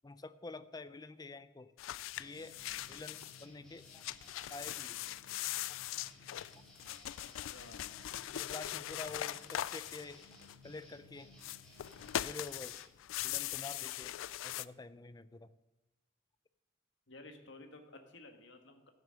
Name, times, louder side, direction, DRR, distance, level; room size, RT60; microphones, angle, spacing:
voice 1, 0.0-1.7 2.2-2.6 2.9-4.0 4.5-5.1 5.7-5.8 8.3-10.4 10.6-11.3 12.2-12.8 13.2-14.1 14.4-15.6, left 3 dB, 20° left, 14 dB, 0.4 m, -48 dB
sound 1, 1.8-3.4 3.8-10.8 11.3-14.6, left 13 dB, 90° left, 0.3 m, -41 dB
sound 2, 2.1-12.8, left 1 dB, 5° left, 3.2 m, -59 dB
voice 2, 7.2-8.0 17.1-18.9, left 2 dB, 65° left, 5 dB, 1.5 m, -54 dB
14.5 x 6.4 x 6.3 m, 1.0 s
head